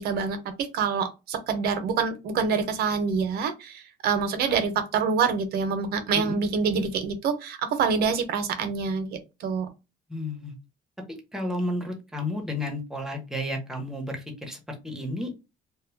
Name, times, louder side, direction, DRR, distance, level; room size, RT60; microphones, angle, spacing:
voice 1, 0.0-9.7, right 5 dB, 70° right, 9 dB, 0.6 m, -26 dB
voice 2, 10.1-10.5 11.1-15.4, left 1 dB, 5° right, 2 dB, 0.8 m, -32 dB
2.2 x 2.1 x 3.2 m, 0.27 s
cardioid pair, 110°, 17 cm